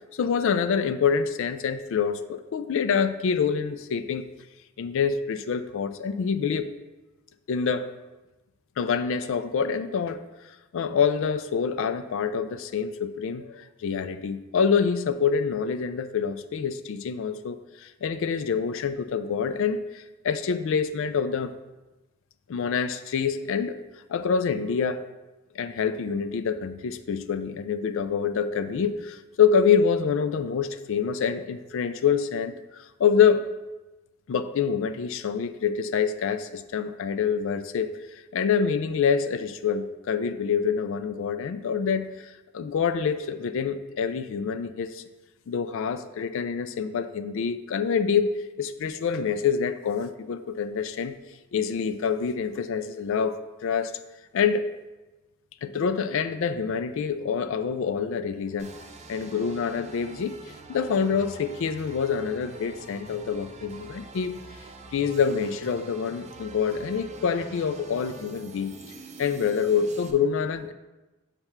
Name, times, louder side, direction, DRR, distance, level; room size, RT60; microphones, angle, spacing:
voice 1, 0.1-4.2 4.8-6.7 7.5-7.9 8.8-10.2 10.7-21.5 22.5-23.8 24.1-25.0 25.6-33.5 34.3-45.0 45.5-51.2 51.5-53.9 54.3-54.7 55.6-58.7 59.1-60.4 60.7-64.3 64.9-68.8 69.2-70.7, left 6 dB, 65° left, 11 dB, 0.4 m, -26 dB
sound 1, 58.6-70.1, right 3 dB, 35° right, 0.5 m, -46 dB
5.9 x 3.3 x 5.7 m, 1.1 s
head